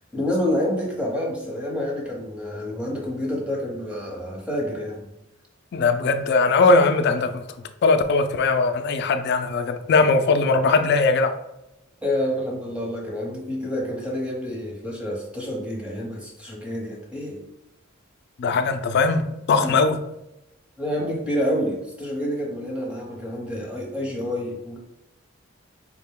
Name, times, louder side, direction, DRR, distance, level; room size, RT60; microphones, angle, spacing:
voice 1, 0.1-5.1 12.0-17.4 19.6-19.7 20.8-24.8, left 1 dB, 5° right, 0.9 m, -28 dB
voice 2, 5.7-7.4 7.8-11.4 18.4-20.0, left 3 dB, 55° left, 0.3 m, -20 dB
4.8 x 2.2 x 3.6 m
head